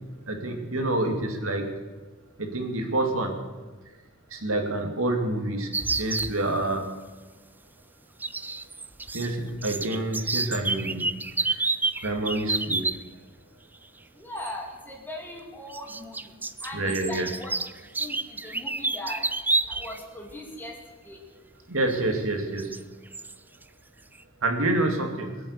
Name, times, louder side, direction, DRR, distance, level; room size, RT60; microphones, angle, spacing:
voice 1, 0.3-1.7 2.4-3.3 4.3-5.7 6.0-6.9 9.1-11.0 12.0-12.9 16.7-17.3 21.7-22.7 24.4-25.4, right 2 dB, 80° right, 4 dB, 2.3 m, -27 dB
sound 1, 5.7-6.3 8.2-9.3 9.5-13.0 14.4-14.5 15.7-20.0 20.3-20.4 21.9-22.0 22.6-22.8 23.1-23.3, right 3 dB, 10° right, 0.4 m, -29 dB
voice 2, 14.1-16.3 16.6-19.2 19.7-20.8 21.0-21.2, left 1 dB, 10° left, 0 dB, 2.7 m, -39 dB
21.5 x 8.0 x 8.2 m, 1.3 s
head